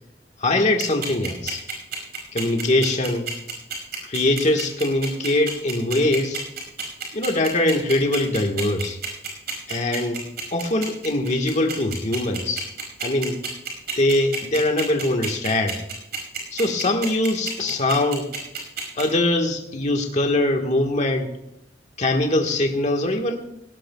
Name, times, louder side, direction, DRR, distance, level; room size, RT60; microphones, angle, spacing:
voice 1, 0.4-1.6 2.3-3.3 4.0-6.4 7.1-9.0 9.7-10.2 10.5-12.7 13.0-13.4 14.0-15.8 16.5-18.3 19.0-21.3 22.0-23.4, left 1 dB, 40° left, 3 dB, 1.5 m, -22 dB
sound 1, 0.8-19.0, right 7 dB, 60° right, 4.9 m, -30 dB
18.5 x 17.5 x 2.3 m, 0.78 s
head